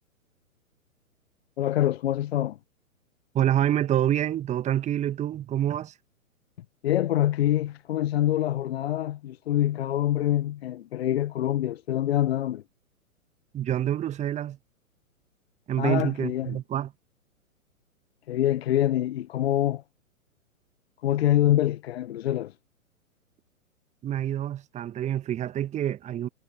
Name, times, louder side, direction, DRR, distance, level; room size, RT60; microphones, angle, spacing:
voice 1, 1.6-2.6 6.8-12.6 15.8-16.6 18.3-19.8 21.0-22.5, left 12 dB, 45° left, 1.1 m, -25 dB
voice 2, 3.3-5.9 13.5-14.6 15.7-16.9 24.0-26.3, right 11 dB, 15° right, 1.8 m, -27 dB
figure-of-eight pair, 115°, 43 cm